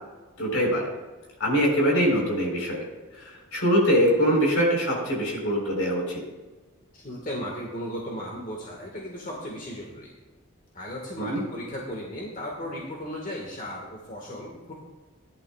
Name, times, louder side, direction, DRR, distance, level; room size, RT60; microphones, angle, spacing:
voice 1, 0.4-0.9 1.4-2.8 3.1-6.2 11.2-11.4, equal, 75° left, -2 dB, 4.1 m, -23 dB
voice 2, 6.9-10.1 10.7-14.7, equal, 40° left, -2 dB, 1.6 m, -36 dB
17.5 x 11.0 x 2.4 m, 1.2 s
head